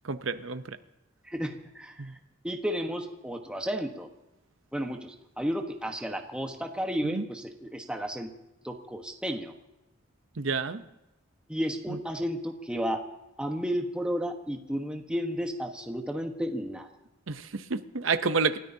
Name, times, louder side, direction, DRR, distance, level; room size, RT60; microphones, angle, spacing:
voice 1, 0.0-0.6 2.0-2.1 7.0-7.2 10.4-10.8 17.3-18.6, right 4 dB, 75° right, 10 dB, 0.8 m, -29 dB
voice 2, 1.2-2.1 2.4-4.1 4.7-8.3 8.6-9.5 11.5-13.0 13.4-16.9, equal, 5° right, 3 dB, 1.2 m, -32 dB
29.5 x 13.0 x 2.8 m, 0.93 s
head